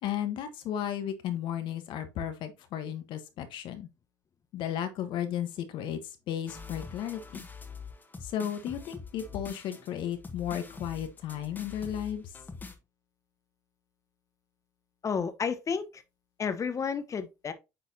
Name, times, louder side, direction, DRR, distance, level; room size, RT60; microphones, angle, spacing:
voice 1, 0.0-3.9 4.5-6.0 6.3-7.4 8.2-12.3, left 10 dB, 65° left, 1.2 m, -34 dB
sound 1, 6.5-12.8, left 4 dB, 20° left, 1.5 m, -44 dB
voice 2, 15.0-16.0 16.4-17.5, left 6 dB, 35° left, 1.0 m, -31 dB
8.7 x 4.1 x 2.8 m
hypercardioid pair, 70°, 9 cm